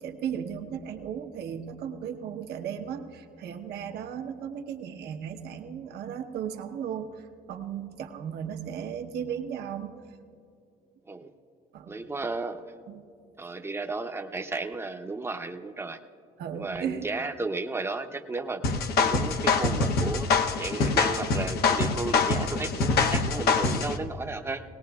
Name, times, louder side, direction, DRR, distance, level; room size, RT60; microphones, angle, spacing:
voice 1, 0.0-9.9 11.7-12.0 12.9-13.0 16.4-17.1, right 8 dB, 70° right, 4 dB, 1.0 m, -36 dB
voice 2, 11.9-12.6 13.4-16.0 16.6-18.6 19.0-24.6, right 3 dB, 15° right, 7 dB, 0.7 m, -34 dB
sound 1, 18.6-24.0, left 4 dB, 65° left, 0.9 m, -25 dB
19.5 x 18.5 x 2.4 m, 2.5 s
cardioid pair, 110°, 17 cm